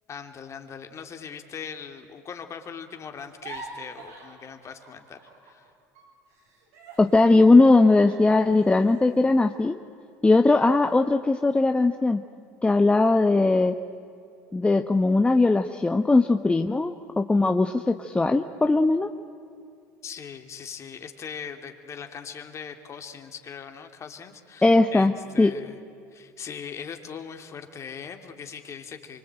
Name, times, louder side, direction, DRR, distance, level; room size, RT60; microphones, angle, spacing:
voice 1, 0.1-5.7 20.0-25.8 26.1-29.2, left 7 dB, 40° left, 6 dB, 2.9 m, -40 dB
sound 1, 3.2-5.7 5.9-10.3 10.8-11.0 11.4-11.9, right 3 dB, 90° right, 7.6 m, -47 dB
voice 2, 7.0-9.8 10.2-12.2 12.6-13.7 14.5-19.1 24.6-25.1 25.4-25.5, left 3 dB, 15° left, 6 dB, 1.1 m, -19 dB
25.5 x 24.5 x 9.0 m, 2.4 s
hypercardioid pair, 80°, 8 cm